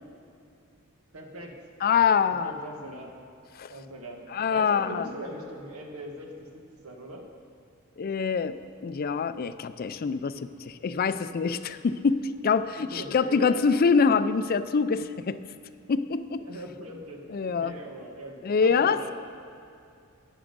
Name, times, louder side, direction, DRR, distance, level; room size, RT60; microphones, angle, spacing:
voice 1, 1.1-1.5 2.2-3.3 3.7-7.2 12.9-13.6 16.4-19.1, right 1 dB, 85° right, 2 dB, 1.5 m, -41 dB
voice 2, 1.8-2.6 3.6-3.7 4.3-5.1 8.0-10.3 10.6-15.4 15.9-16.4 17.3-17.7 18.4-19.1, left 5 dB, 45° left, 13 dB, 0.4 m, -25 dB
11.0 x 9.9 x 5.2 m, 2.5 s
head